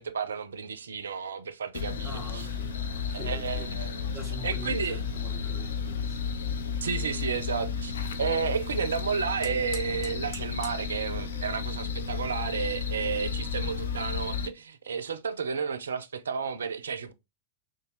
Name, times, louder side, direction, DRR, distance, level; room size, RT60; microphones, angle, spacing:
voice 1, 0.0-2.5 3.1-4.0 4.4-5.0 6.8-7.9 8.2-17.1, right 6 dB, 70° right, 0.4 m, -32 dB
sound 1, 1.7-14.5, left 6 dB, 65° left, 0.4 m, -33 dB
voice 2, 2.0-3.7 4.1-6.6 7.1-7.2, left 1 dB, 5° left, 2.2 m, -45 dB
Fire, 6.5-13.7, left 2 dB, 30° left, 1.2 m, -52 dB
3.9 x 2.2 x 3.0 m
figure-of-eight pair, 90°, 0 cm